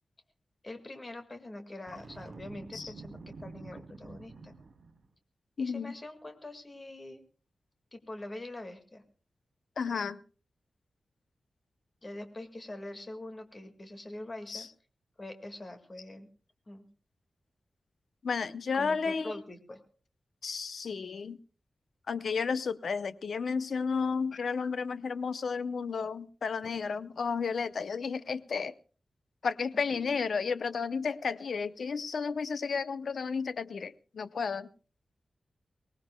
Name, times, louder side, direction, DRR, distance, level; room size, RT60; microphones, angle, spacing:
voice 1, 0.6-4.5 5.6-7.2 7.9-9.0 12.0-14.7 15.2-16.3 16.7-16.9 18.7-19.8 29.8-30.0, left 1 dB, 30° left, 6 dB, 1.9 m, -44 dB
Boom, 1.9-5.1, right 3 dB, 60° right, 3.1 m, -48 dB
voice 2, 5.6-5.9 9.8-10.2 14.5-14.7 18.2-19.4 20.4-21.4 22.1-28.7 29.4-34.7, left 5 dB, 75° left, 14 dB, 0.7 m, -32 dB
23.5 x 18.5 x 2.3 m, 0.37 s
wide cardioid pair, 140°, 0 cm